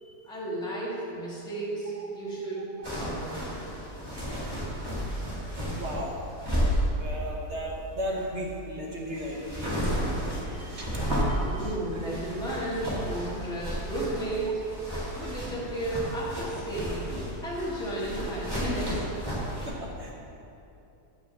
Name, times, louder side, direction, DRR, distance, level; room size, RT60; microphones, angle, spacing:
voice 1, 0.2-2.7 3.0-3.5 11.3-14.6 15.2-19.1, right 1 dB, 5° left, -7 dB, 1.7 m, -33 dB
sound 1, 2.8-19.7, equal, 15° right, 2.5 m, -33 dB
voice 2, 5.8-6.1 7.0-10.0 10.3-12.0 13.7-13.8 19.5-20.3, equal, 50° right, -2 dB, 1.2 m, -37 dB
9.2 x 5.1 x 7.1 m, 2.8 s
omnidirectional pair, 1.7 m